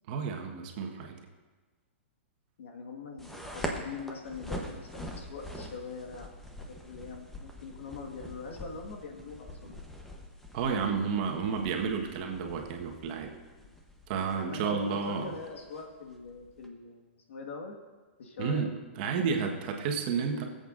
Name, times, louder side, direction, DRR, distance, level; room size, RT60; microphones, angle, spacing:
voice 1, 0.1-1.2 10.5-13.3 14.1-15.3 18.4-20.4, right 5 dB, 45° right, 2 dB, 1.3 m, -31 dB
voice 2, 2.6-9.8 14.3-17.7 18.2-18.7, left 4 dB, 75° left, 1 dB, 1.7 m, -43 dB
sound 1, 3.2-16.7, equal, 5° left, 0.9 m, -44 dB
22.5 x 8.0 x 2.6 m, 1.3 s
hypercardioid pair, 150°, 7 cm